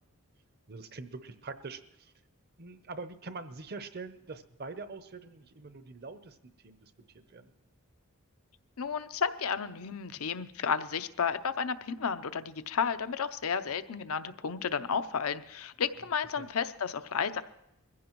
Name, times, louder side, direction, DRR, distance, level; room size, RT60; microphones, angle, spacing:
voice 1, 0.7-2.1 2.6-7.5 16.4-16.5, right 3 dB, 45° right, 11 dB, 0.7 m, -44 dB
voice 2, 8.8-17.4, left 6 dB, 75° left, 12 dB, 0.6 m, -32 dB
22.5 x 15.5 x 3.0 m, 0.83 s
head